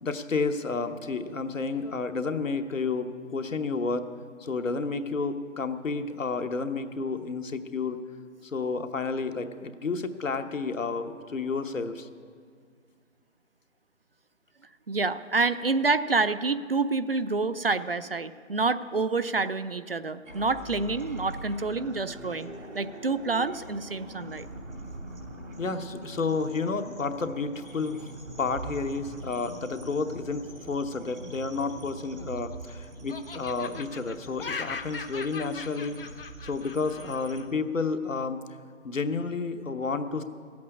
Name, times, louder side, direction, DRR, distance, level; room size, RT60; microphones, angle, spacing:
voice 1, 0.0-4.1 4.4-8.0 8.4-12.1 25.6-28.0 28.4-36.0 36.4-38.4 38.8-40.2, left 4 dB, 80° left, 8 dB, 1.1 m, -31 dB
voice 2, 14.9-24.5, right 3 dB, 50° right, 13 dB, 0.4 m, -28 dB
sound 1, 20.2-37.4, right 1 dB, 85° right, 3.0 m, -43 dB
Laughter, 31.9-32.7 33.1-37.5, left 5 dB, 45° left, 0.7 m, -40 dB
14.0 x 8.5 x 9.7 m, 2.1 s
figure-of-eight pair, 160°, 39 cm